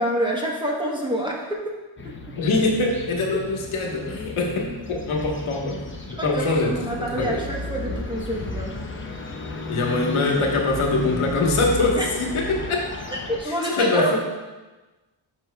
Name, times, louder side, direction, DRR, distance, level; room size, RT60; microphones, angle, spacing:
voice 1, 0.0-1.6 6.1-8.7 12.0-12.1 13.3-14.2, right 1 dB, 10° right, -2 dB, 1.1 m, -27 dB
sound 1, 2.0-13.4, left 2 dB, 25° left, 0.7 m, -34 dB
voice 2, 2.4-7.4 9.7-12.9 13.4-14.2, left 2 dB, 85° left, 0 dB, 1.3 m, -23 dB
9.9 x 5.8 x 2.3 m, 1.2 s
wide cardioid pair, 125°, 48 cm